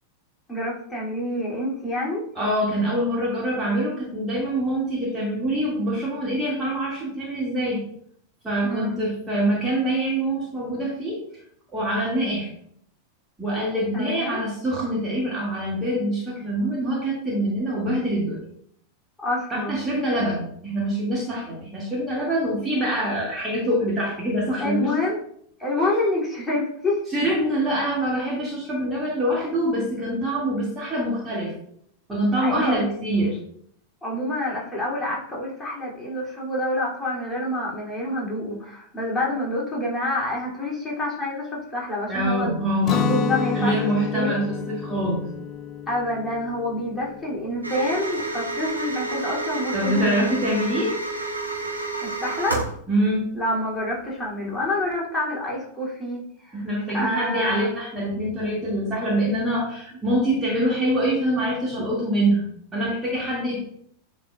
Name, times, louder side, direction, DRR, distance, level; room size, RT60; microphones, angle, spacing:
voice 1, 0.5-2.3 8.6-8.9 13.9-14.4 19.2-19.8 24.6-25.2 25.6-27.0 32.4-32.8 34.0-43.8 44.1-44.3 45.9-50.5 52.0-52.6 53.3-56.7 56.9-57.7, left 1 dB, 10° left, -5 dB, 2.6 m, -27 dB
voice 2, 2.4-7.8 8.4-11.2 11.7-12.5 13.4-18.4 19.7-24.9 25.8-25.9 27.1-31.5 32.1-33.4 42.1-43.2 43.5-45.3 49.7-51.0 52.9-53.3 56.5-62.4 62.7-63.7, right 1 dB, 15° right, -5 dB, 2.0 m, -25 dB
Guitar, 42.8-48.7, left 8 dB, 30° left, 0.5 m, -30 dB
sound 1, 47.6-52.8, right 2 dB, 85° right, 1.1 m, -30 dB
9.9 x 4.3 x 2.3 m, 0.66 s
figure-of-eight pair, 90°, 0 cm